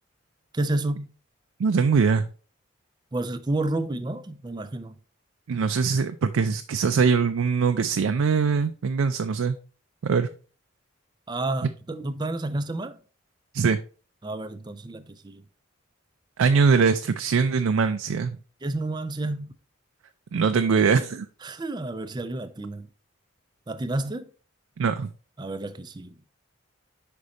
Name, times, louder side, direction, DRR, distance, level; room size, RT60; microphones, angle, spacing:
voice 1, 0.5-1.1 3.1-4.9 11.3-13.0 14.2-15.4 18.6-19.5 21.4-22.9 23.7-24.3 25.4-26.2, right 2 dB, 20° right, 0.4 m, -30 dB
voice 2, 1.6-2.2 5.5-9.6 10.0-10.3 13.5-13.8 16.4-18.4 20.3-21.3 24.8-25.1, right 5 dB, 85° right, 0.4 m, -22 dB
5.3 x 4.9 x 4.0 m
head